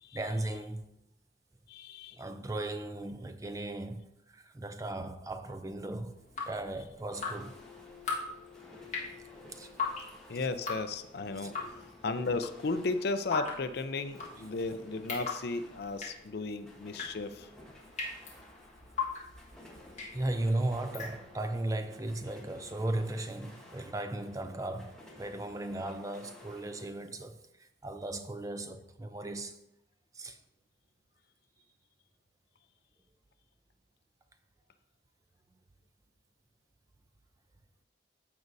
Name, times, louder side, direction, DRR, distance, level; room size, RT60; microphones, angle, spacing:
voice 1, 0.1-0.9 2.1-7.6 8.2-8.3 9.3-9.7 11.3-11.5 20.1-29.6 30.1-30.4, right 1 dB, 15° right, 0.4 m, -37 dB
voice 2, 1.7-2.2 10.3-11.8 12.0-17.5, left 3 dB, 55° left, 0.5 m, -35 dB
Drip, 6.1-21.6, left 4 dB, 35° left, 1.5 m, -40 dB
sound 1, 7.1-26.9, left 2 dB, 5° left, 1.4 m, -54 dB
14.0 x 5.3 x 2.6 m
head